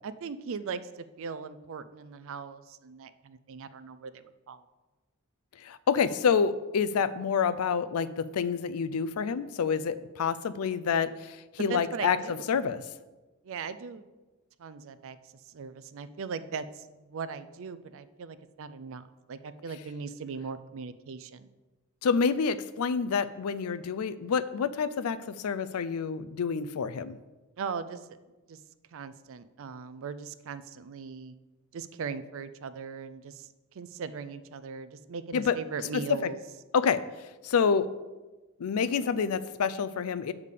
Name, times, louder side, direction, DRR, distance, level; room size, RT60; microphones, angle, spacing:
voice 1, 0.0-4.6 11.6-12.5 13.4-14.1 14.6-15.2 15.5-21.5 27.6-28.2 28.5-28.6 28.9-31.3 31.7-33.5 33.7-36.4, right 5 dB, 65° right, 13 dB, 0.4 m, -39 dB
voice 2, 5.6-12.8 22.0-27.2 35.3-35.6 36.2-36.3 36.7-37.0 37.4-37.9 38.6-40.3, left 6 dB, 90° left, 14 dB, 0.4 m, -28 dB
8.2 x 3.6 x 6.6 m, 1.2 s
head